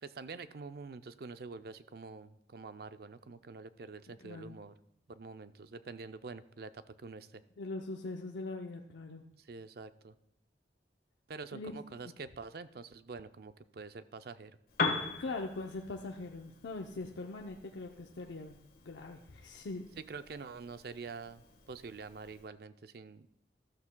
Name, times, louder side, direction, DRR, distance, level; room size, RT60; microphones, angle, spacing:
voice 1, 0.0-4.7 5.1-7.4 9.5-10.1 11.3-14.6 20.0-23.3, right 4 dB, 55° right, 12 dB, 0.5 m, -46 dB
voice 2, 4.2-4.6 7.6-9.2 11.5-11.8 15.2-18.6 18.8-19.8, left 3 dB, 85° left, 3 dB, 0.6 m, -41 dB
Piano, 14.7-22.5, left 4 dB, 50° left, 1.4 m, -42 dB
13.0 x 13.0 x 2.2 m, 0.79 s
head